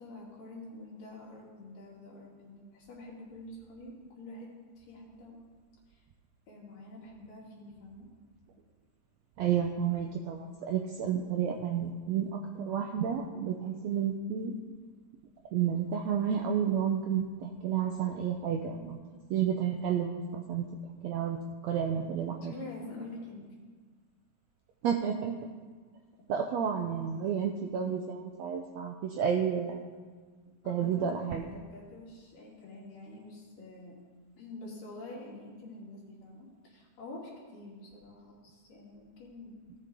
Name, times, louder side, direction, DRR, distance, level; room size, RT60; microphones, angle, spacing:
voice 1, 0.0-4.5 4.8-5.4 5.9-6.0 6.5-8.1 21.9-23.5 30.6-33.9 34.4-39.6, left 2 dB, 80° left, -4 dB, 4.0 m, -47 dB
voice 2, 9.4-14.6 15.5-19.0 19.3-20.7 21.0-21.4 21.6-22.5 24.8-25.3 26.3-29.8 30.7-31.4, right 8 dB, 90° right, 2 dB, 1.5 m, -31 dB
16.5 x 6.9 x 3.7 m, 1.5 s
omnidirectional pair, 3.8 m